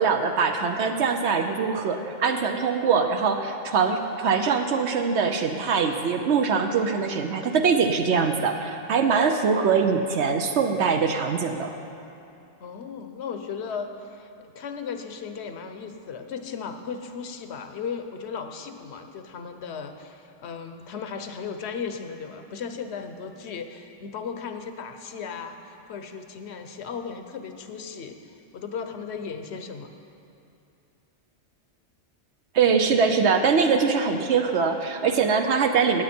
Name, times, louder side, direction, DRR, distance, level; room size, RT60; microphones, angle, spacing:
voice 1, 0.0-11.7 32.5-36.0, right 5 dB, 75° right, 5 dB, 1.0 m, -23 dB
voice 2, 12.6-29.9, left 6 dB, 70° left, 7 dB, 1.0 m, -36 dB
17.5 x 8.2 x 4.3 m, 2.6 s
omnidirectional pair, 1.2 m